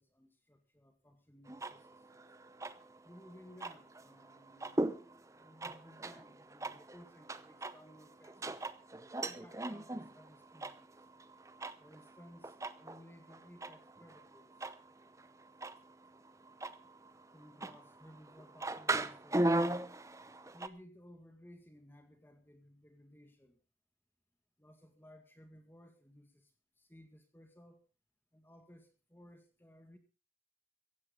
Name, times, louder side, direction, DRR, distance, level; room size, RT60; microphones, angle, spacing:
voice 1, 0.0-2.2 3.0-4.9 5.4-8.7 9.2-11.0 11.8-14.7 17.3-19.9 20.5-23.6 24.6-27.8 28.3-30.0, equal, 10° left, 7 dB, 1.9 m, -59 dB
sound 1, 1.5-20.7, right 2 dB, 15° right, 0.8 m, -39 dB
16.0 x 15.5 x 3.8 m, 0.32 s
head